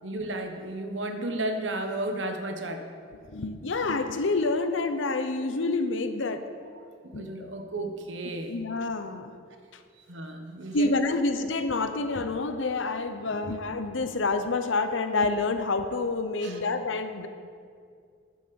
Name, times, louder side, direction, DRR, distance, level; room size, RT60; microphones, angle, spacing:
voice 1, 0.0-2.9 6.7-8.5 10.1-10.9 16.4-16.6, right 1 dB, 70° right, 6 dB, 1.1 m, -33 dB
voice 2, 3.3-6.4 7.1-7.5 8.5-9.3 10.7-17.3, left 3 dB, 75° left, 9 dB, 0.8 m, -28 dB
11.5 x 6.6 x 7.0 m, 2.2 s
head